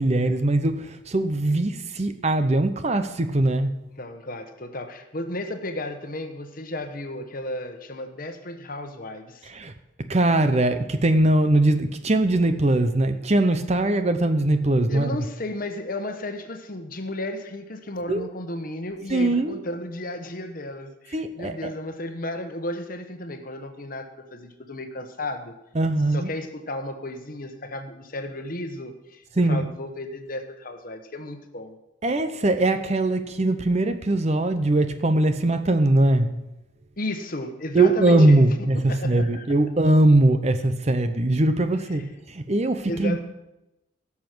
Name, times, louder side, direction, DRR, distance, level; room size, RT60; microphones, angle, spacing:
voice 1, 0.0-3.8 9.4-9.7 10.1-15.2 18.1-18.3 19.1-19.6 21.1-21.7 25.7-26.3 29.4-29.7 32.0-36.3 37.7-43.2, right 2 dB, 30° right, 9 dB, 0.7 m, -21 dB
voice 2, 4.0-9.5 14.9-25.6 26.1-31.8 37.0-38.5 38.9-39.5 42.9-43.2, left 1 dB, 45° left, 7 dB, 1.1 m, -34 dB
16.5 x 7.2 x 6.1 m, 0.94 s
head